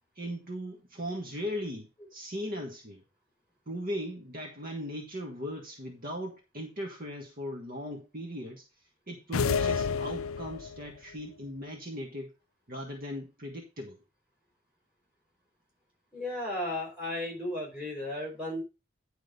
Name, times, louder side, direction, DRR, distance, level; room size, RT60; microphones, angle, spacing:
voice 1, 0.1-3.0 3.7-8.6 9.1-12.3 12.7-14.0, equal, 45° right, 2 dB, 1.4 m, -38 dB
sound 1, 9.3-10.9, left 6 dB, 90° left, 0.5 m, -29 dB
voice 2, 16.1-18.6, left 1 dB, 5° right, -1 dB, 5.1 m, -34 dB
10.0 x 5.0 x 5.3 m, 0.28 s
head